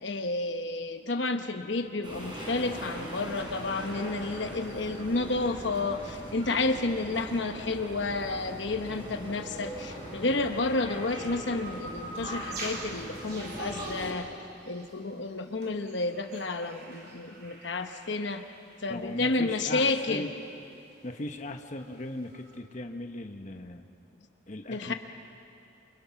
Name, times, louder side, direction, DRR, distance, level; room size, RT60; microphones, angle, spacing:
voice 1, 0.0-14.3 14.7-18.4 18.8-20.3 24.7-24.9, left 3 dB, 65° left, 6 dB, 1.1 m, -31 dB
sound 1, 2.0-14.1, right 1 dB, 25° right, 5.0 m, -41 dB
sound 2, 6.1-7.8 8.4-22.6, right 2 dB, 55° right, 3.7 m, -47 dB
voice 2, 18.9-20.3 21.0-23.8 24.5-24.9, left 1 dB, 40° left, 5 dB, 1.1 m, -38 dB
28.5 x 25.0 x 5.8 m, 2.6 s
head